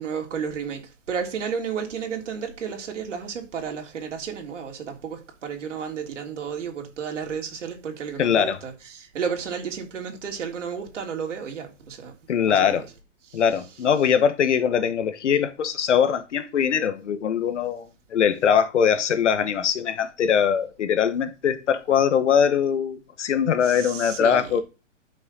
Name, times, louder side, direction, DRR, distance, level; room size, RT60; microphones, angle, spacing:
voice 1, 0.0-12.1 12.4-12.9 13.3-14.2 23.6-24.6, right 6 dB, 75° right, 3.4 m, -33 dB
voice 2, 8.2-8.6 12.3-12.8 13.3-24.6, left 8 dB, 70° left, 1.4 m, -22 dB
11.0 x 6.3 x 4.0 m
hypercardioid pair, 130°, 37 cm